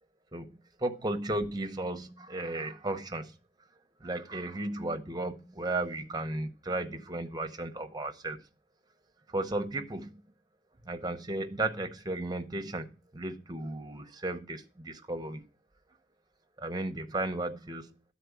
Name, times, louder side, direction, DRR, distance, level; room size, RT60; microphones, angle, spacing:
voice 1, 0.3-3.3 4.0-8.4 9.3-10.2 10.8-15.4 16.6-18.1, right 2 dB, 20° right, 0.8 m, -35 dB
12.5 x 4.2 x 8.3 m
head